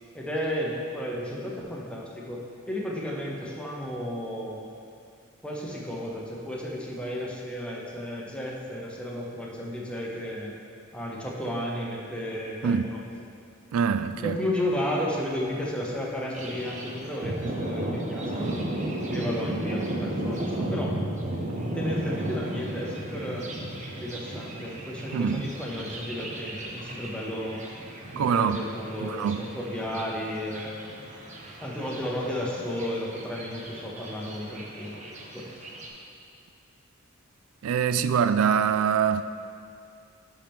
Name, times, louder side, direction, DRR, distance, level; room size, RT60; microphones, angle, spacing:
voice 1, 0.1-4.6 5.4-10.5 10.9-13.0 14.2-18.5 19.1-21.0 21.7-23.5 24.0-27.6 28.1-30.9 31.6-35.1 35.3-35.5, equal, 5° left, -3 dB, 0.8 m, -33 dB
voice 2, 12.6-12.9 13.7-14.4 21.5-21.6 25.1-25.5 28.1-28.6 29.0-29.4 37.6-39.2, right 7 dB, 85° right, 12 dB, 0.3 m, -24 dB
Thunder, 16.3-35.9, right 1 dB, 35° right, 0.8 m, -35 dB
10.5 x 4.4 x 3.6 m, 2.4 s
head